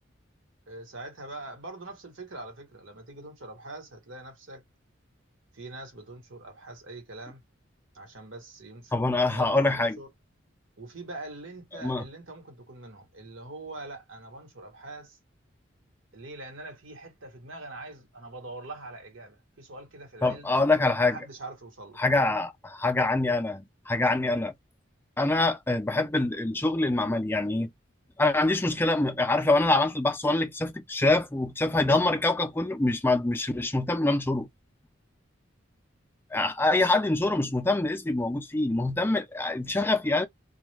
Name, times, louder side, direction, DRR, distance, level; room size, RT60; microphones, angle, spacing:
voice 1, 0.7-4.6 5.5-7.4 7.9-10.1 10.8-15.2 16.1-20.5 21.0-22.5, right 2 dB, 75° right, 1.2 m, -43 dB
voice 2, 8.9-10.0 11.8-12.1 20.2-21.2 22.0-24.5 25.2-27.7 28.2-34.5 36.3-40.3, left 2 dB, 10° left, 0.4 m, -25 dB
2.3 x 2.1 x 3.1 m
head